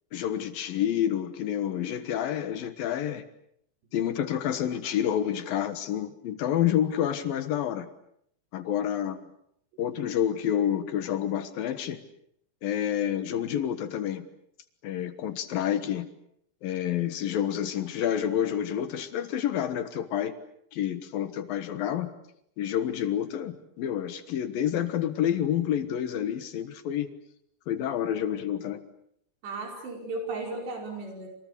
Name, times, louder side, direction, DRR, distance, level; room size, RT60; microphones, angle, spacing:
voice 1, 0.1-3.2 3.9-7.9 8.5-9.2 9.8-12.0 12.6-14.3 14.8-16.1 16.6-20.3 20.7-22.1 22.6-27.1 27.7-28.8, left 10 dB, 65° left, 2.9 m, -28 dB
voice 2, 29.4-31.3, right 3 dB, 90° right, 7.4 m, -35 dB
28.0 x 27.5 x 6.8 m
omnidirectional pair, 4.8 m